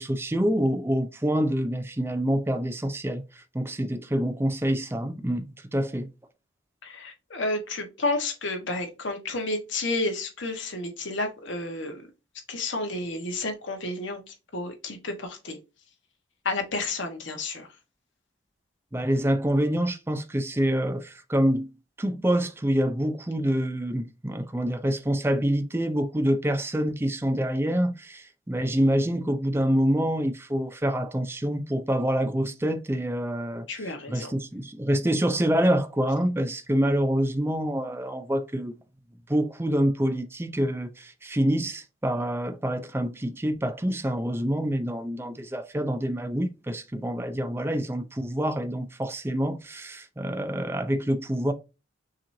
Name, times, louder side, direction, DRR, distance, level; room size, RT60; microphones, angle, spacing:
voice 1, 0.0-6.1 18.9-21.7 22.0-38.7 39.3-51.5, equal, 10° right, 0.5 m, -26 dB
voice 2, 6.8-12.0 12.5-15.6 16.4-17.7 33.7-34.3, left 2 dB, 75° left, 1.3 m, -31 dB
6.3 x 3.0 x 2.7 m
head